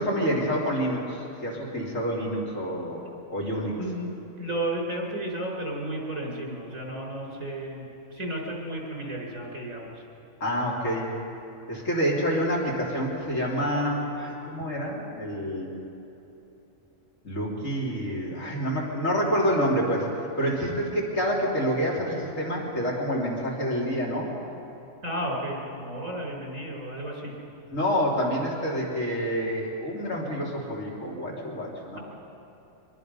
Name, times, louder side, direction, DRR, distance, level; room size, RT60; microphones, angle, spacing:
voice 1, 0.0-3.0 3.3-3.8 10.4-11.1 11.7-15.7 17.2-20.1 20.4-24.3 27.7-32.0, equal, 70° left, -4 dB, 3.5 m, -27 dB
voice 2, 3.0-3.5 3.8-4.1 4.4-9.9 25.0-27.3, right 1 dB, 75° right, -1 dB, 4.9 m, -33 dB
25.5 x 21.5 x 5.4 m, 3.0 s
omnidirectional pair, 1.4 m